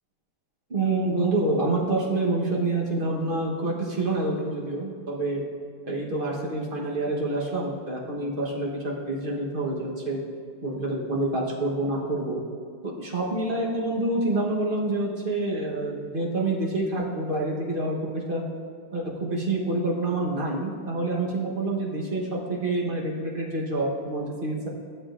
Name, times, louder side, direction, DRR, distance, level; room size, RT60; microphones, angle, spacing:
voice 1, 0.7-5.4 5.9-10.2 10.6-12.4 12.8-18.4 18.9-24.7, right 2 dB, 35° right, -3 dB, 1.1 m, -27 dB
13.0 x 7.2 x 2.5 m, 2.1 s
omnidirectional pair, 2.0 m